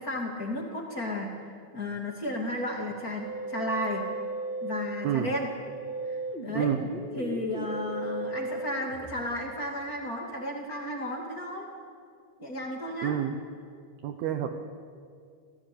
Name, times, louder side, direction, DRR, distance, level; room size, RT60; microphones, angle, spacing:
voice 1, 0.0-4.0 4.6-5.5 6.1-6.7 7.1-11.7 12.4-13.2, left 1 dB, 35° left, 1 dB, 1.4 m, -33 dB
Musical instrument, 3.2-9.2, right 2 dB, 15° right, 2.1 m, -36 dB
voice 2, 13.0-13.4 14.0-14.5, right 10 dB, 75° right, 7 dB, 2.4 m, -28 dB
28.5 x 18.0 x 8.6 m, 2.3 s
omnidirectional pair, 5.9 m